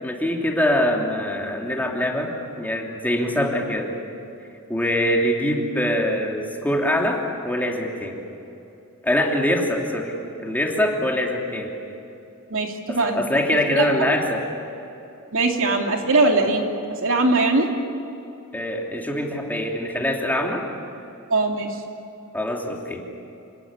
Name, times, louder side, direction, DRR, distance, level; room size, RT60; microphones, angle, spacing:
voice 1, 0.0-2.3 2.6-3.9 4.7-8.1 9.0-10.1 10.4-11.7 12.9-14.4 18.5-20.6 22.3-23.0, left 1 dB, 10° left, 0 dB, 3.0 m, -23 dB
voice 2, 12.5-13.2 13.8-13.9 15.3-16.7 17.0-17.7 21.3-21.8, right 3 dB, 65° right, 2 dB, 2.9 m, -20 dB
28.0 x 18.0 x 9.8 m, 2.8 s
head